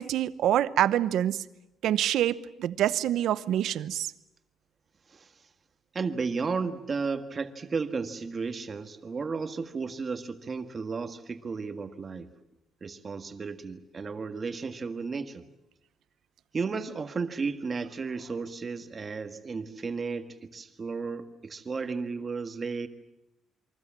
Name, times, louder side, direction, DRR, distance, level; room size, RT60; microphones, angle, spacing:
voice 1, 0.0-1.4 1.8-4.1, right 11 dB, 85° right, 0.9 m, -26 dB
voice 2, 5.9-12.3 12.8-15.4 16.5-22.9, right 4 dB, 30° right, 1.7 m, -33 dB
28.0 x 23.5 x 7.5 m
cardioid pair, 155°, 0 cm